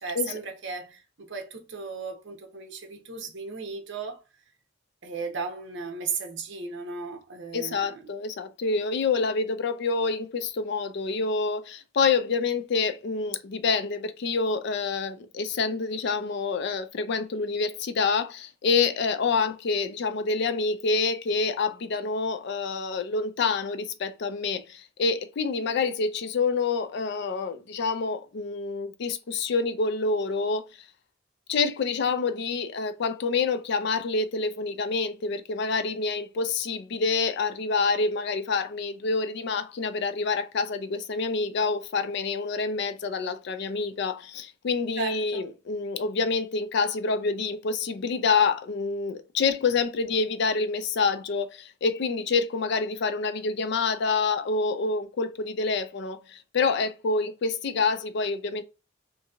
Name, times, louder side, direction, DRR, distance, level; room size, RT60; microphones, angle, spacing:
voice 1, 0.0-4.2 5.0-7.9 45.0-45.4, right 5 dB, 65° right, 0.7 m, -35 dB
voice 2, 7.5-30.7 31.5-58.6, left 4 dB, 60° left, 0.4 m, -27 dB
2.8 x 2.6 x 2.3 m
head